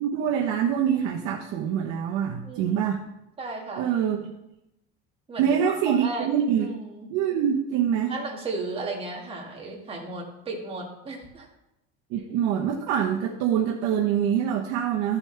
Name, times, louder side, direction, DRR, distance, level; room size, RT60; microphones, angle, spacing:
voice 1, 0.0-3.0 3.8-4.3 5.4-6.7 7.1-8.1 12.1-15.2, right 8 dB, 70° right, -1 dB, 1.1 m, -25 dB
voice 2, 2.4-2.9 3.4-3.9 5.3-6.3 6.6-7.1 8.1-11.5, right 3 dB, 20° right, -2 dB, 2.1 m, -35 dB
13.5 x 7.0 x 3.4 m, 0.89 s
cardioid pair, 170°, 29 cm